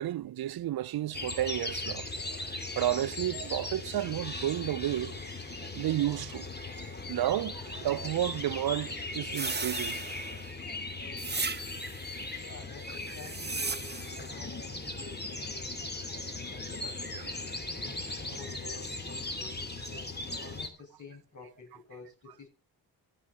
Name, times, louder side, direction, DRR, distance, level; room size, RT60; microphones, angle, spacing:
voice 1, 0.0-2.0 2.8-5.2 5.6-6.4 7.1-10.0, right 13 dB, 55° right, 0.5 m, -31 dB
sound 1, 1.1-20.7, left 2 dB, 20° left, 2.5 m, -38 dB
sound 2, 9.3-10.5 11.2-12.0 13.0-14.3, right 4 dB, 20° right, 1.0 m, -36 dB
voice 2, 12.4-15.8 16.1-17.0 18.2-20.1 20.4-22.5, left 4 dB, 40° left, 6.7 m, -50 dB
15.5 x 6.5 x 4.2 m
supercardioid pair, 50°, 46 cm